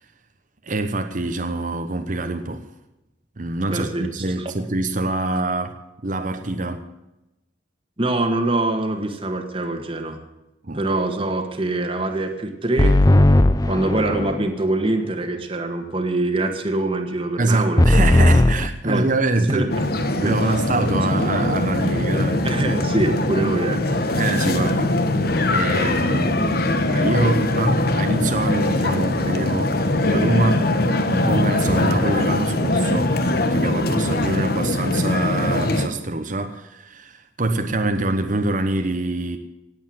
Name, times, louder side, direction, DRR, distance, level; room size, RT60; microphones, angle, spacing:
voice 1, 0.7-2.7 3.4-5.7 6.0-6.9 10.6-10.8 17.4-19.7 20.2-22.5 24.2-25.1 25.5-29.8 30.0-30.7 31.1-39.4, right 2 dB, 45° right, 1.0 m, -25 dB
voice 2, 3.7-4.1 4.4-4.5 8.0-10.2 10.7-13.0 13.6-17.8 18.8-19.1 19.5-19.7 20.2-20.4 22.4-24.2, right 2 dB, 30° right, 1.7 m, -24 dB
sound 1, 12.8-14.5 17.8-18.7, left 1 dB, 20° left, 0.6 m, -16 dB
sound 2, 19.7-35.9, left 1 dB, 55° left, 1.4 m, -21 dB
18.0 x 8.2 x 7.8 m
head